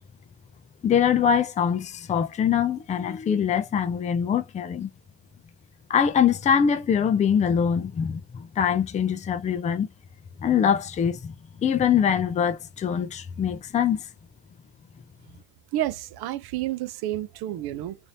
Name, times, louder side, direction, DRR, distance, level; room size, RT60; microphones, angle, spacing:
voice 1, 0.8-4.9 5.9-9.9 10.4-11.3 11.6-14.1, left 8 dB, 20° left, 0.3 m, -23 dB
voice 2, 15.7-18.0, right 13 dB, 55° right, 0.6 m, -30 dB
2.7 x 2.6 x 3.2 m
cardioid pair, 105°, 45 cm